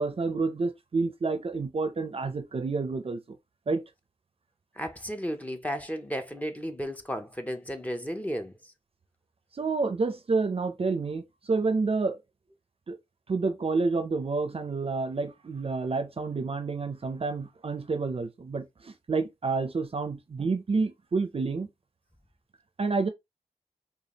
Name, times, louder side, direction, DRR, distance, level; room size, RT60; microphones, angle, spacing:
voice 1, 0.0-3.2 3.7-3.8 9.5-12.2 12.9-13.0 13.3-21.7 22.8-23.1, right 4 dB, 45° right, 0.5 m, -29 dB
voice 2, 4.8-8.7, equal, 10° left, 0.6 m, -34 dB
4.9 x 2.4 x 2.9 m
wide cardioid pair, 110°, 14 cm